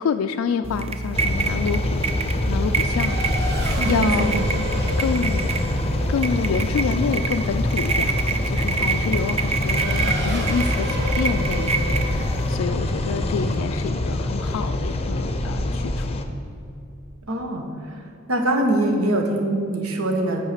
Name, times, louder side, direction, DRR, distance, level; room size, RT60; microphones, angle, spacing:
voice 1, 0.0-2.1 2.5-3.2 3.9-4.4 5.0-8.2 8.5-16.2, left 6 dB, 90° left, 8 dB, 0.3 m, -27 dB
sound 1, 0.6-12.5, right 3 dB, 30° right, 0.5 m, -26 dB
Race car auto racing / Accelerating revving vroom, 0.8-14.8, right 1 dB, 55° right, 1.3 m, -35 dB
sound 2, 1.1-16.2, left 1 dB, 30° left, 0.6 m, -25 dB
voice 2, 3.8-4.4 17.3-18.0 18.3-20.4, right 1 dB, 90° right, 3 dB, 1.1 m, -23 dB
8.6 x 4.8 x 6.5 m, 2.6 s
head